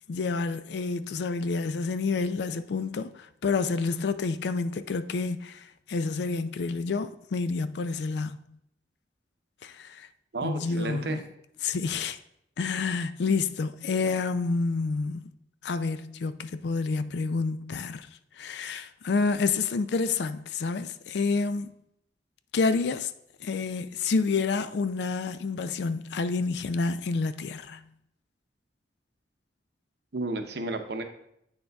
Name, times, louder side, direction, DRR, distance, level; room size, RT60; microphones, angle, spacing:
voice 1, 0.1-8.4 9.6-10.1 10.4-11.2 11.6-12.2 12.6-15.3 15.6-18.1 18.4-21.7 22.5-23.1 23.4-27.8, left 4 dB, 75° left, 0.4 m, -29 dB
voice 2, 10.3-11.2 30.1-31.0, right 2 dB, 65° right, 0.7 m, -32 dB
8.7 x 6.4 x 2.3 m
head